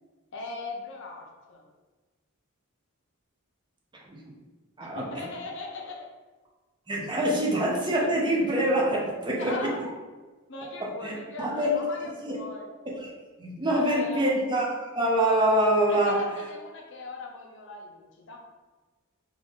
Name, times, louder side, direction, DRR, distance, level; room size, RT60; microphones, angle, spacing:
voice 1, 0.3-1.6 4.8-6.1 9.4-9.9 10.5-12.7 13.7-14.3 15.9-18.4, left 2 dB, 60° left, 1 dB, 0.6 m, -39 dB
voice 2, 4.8-5.2 6.9-9.7 10.8-11.7 12.2-12.4 12.9-13.1 13.4-16.2, right 1 dB, 20° right, -2 dB, 0.6 m, -25 dB
3.6 x 2.6 x 3.5 m, 1.3 s
head